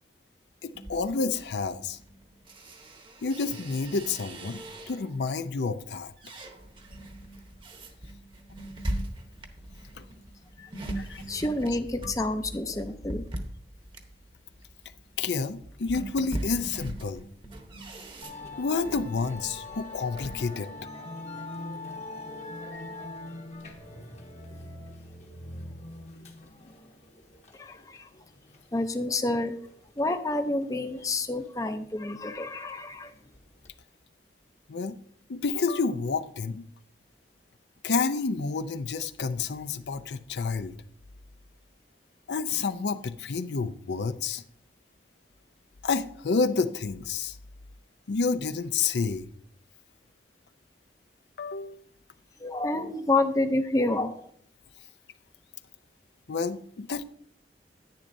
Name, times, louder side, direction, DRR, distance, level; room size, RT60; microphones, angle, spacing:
voice 1, 0.6-2.0 3.2-6.1 9.9-10.0 11.0-11.2 12.0-12.1 15.2-17.2 18.6-20.7 34.7-35.0 35.3-36.6 37.8-40.7 42.3-44.4 45.8-47.4 48.1-49.3 51.4-51.8 56.3-57.0, left 4 dB, 75° left, 0.5 m, -29 dB
sound 1, 0.7-5.3 5.7-20.4, right 1 dB, 30° right, 0.9 m, -41 dB
voice 2, 10.6-11.0 11.2-13.3 27.5-28.1 28.7-29.5 30.0-33.1 52.4-54.3, left 2 dB, 20° left, 0.6 m, -29 dB
Musical instrument, 18.2-33.7, left 2 dB, 40° left, 1.1 m, -43 dB
10.5 x 9.8 x 2.6 m
head